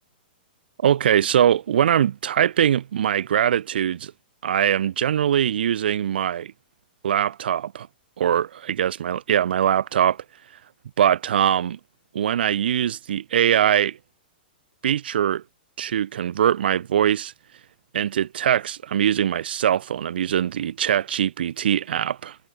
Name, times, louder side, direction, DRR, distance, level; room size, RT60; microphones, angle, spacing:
voice 1, 0.8-4.1 4.4-6.5 7.0-7.9 8.2-10.2 11.0-11.8 12.1-14.0 14.8-15.4 15.8-17.3 17.9-22.4, right 9 dB, 90° right, 0.4 m, -22 dB
hypercardioid pair, 175°, 5 cm